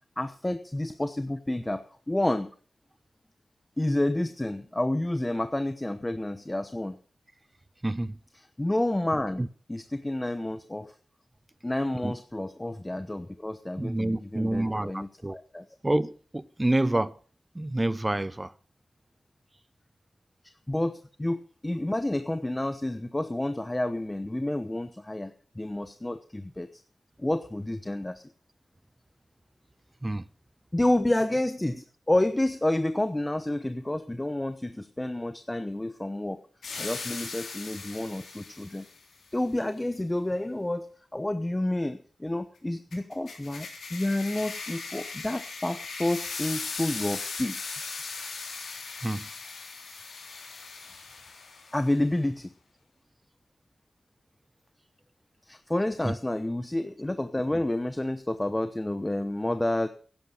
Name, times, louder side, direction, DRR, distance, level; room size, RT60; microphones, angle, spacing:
voice 1, 0.2-2.5 3.8-7.0 8.6-9.4 9.7-10.9 11.6-15.6 20.7-26.7 27.2-28.2 30.7-36.4 36.8-38.8 39.3-40.9 41.1-47.6 51.7-52.5 55.5-59.9, left 1 dB, 20° left, 0.9 m, -29 dB
voice 2, 7.8-8.2 9.4-9.5 12.0-12.1 13.8-15.4 15.8-17.2 17.5-18.5 30.0-30.2 49.0-49.3 56.0-56.1, right 1 dB, 20° right, 0.8 m, -28 dB
sound 1, 36.6-39.0 42.9-51.8, left 4 dB, 85° left, 3.7 m, -38 dB
11.5 x 10.5 x 6.6 m
cardioid pair, 50°, 0 cm